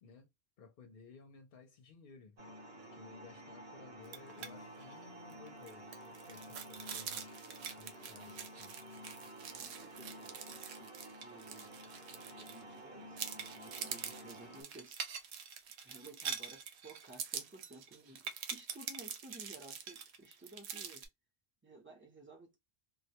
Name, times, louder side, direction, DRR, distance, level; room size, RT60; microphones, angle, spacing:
voice 1, 0.6-2.4 2.7-5.9 6.3-7.4 7.8-8.7, left 5 dB, 60° left, 0.7 m, -57 dB
sound 1, 2.4-14.6, right 1 dB, 65° right, 1.1 m, -51 dB
sound 2, 4.0-4.5 4.8-4.9 5.3-12.8 13.2-21.1, right 7 dB, 90° right, 0.8 m, -45 dB
voice 2, 9.5-11.0 11.2-11.7 12.3-15.3 15.8-21.1 21.6-22.6, right 2 dB, 15° right, 0.6 m, -55 dB
2.2 x 2.1 x 2.7 m
omnidirectional pair, 1.1 m